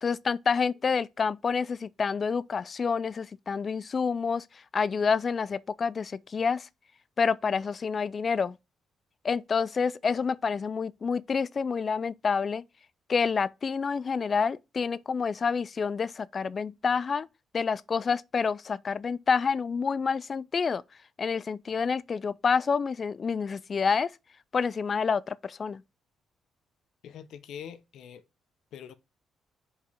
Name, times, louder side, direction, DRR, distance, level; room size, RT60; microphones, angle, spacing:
voice 1, 0.0-6.7 7.2-8.6 9.2-12.6 13.1-17.3 17.5-20.8 21.2-24.1 24.5-25.8, left 5 dB, 40° left, 0.4 m, -28 dB
voice 2, 27.0-28.2 28.7-28.9, left 9 dB, 75° left, 0.8 m, -43 dB
5.4 x 4.8 x 5.0 m
cardioid pair, 90°, 0 cm